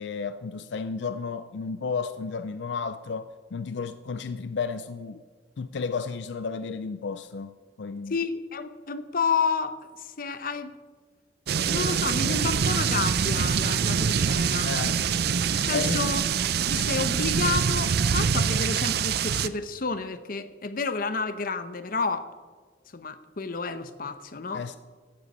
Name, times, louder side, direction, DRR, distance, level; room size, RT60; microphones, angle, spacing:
voice 1, 0.0-5.2 5.6-7.5 7.8-8.1 14.6-15.0 15.7-16.1 24.5-24.8, left 5 dB, 80° left, 12 dB, 0.4 m, -32 dB
voice 2, 8.1-10.7 11.7-14.7 15.5-22.3 22.9-24.6, left 4 dB, 50° left, 11 dB, 0.8 m, -30 dB
sound 1, 11.5-19.5, right 7 dB, 60° right, 0.5 m, -25 dB
15.0 x 8.0 x 5.4 m, 1.5 s
head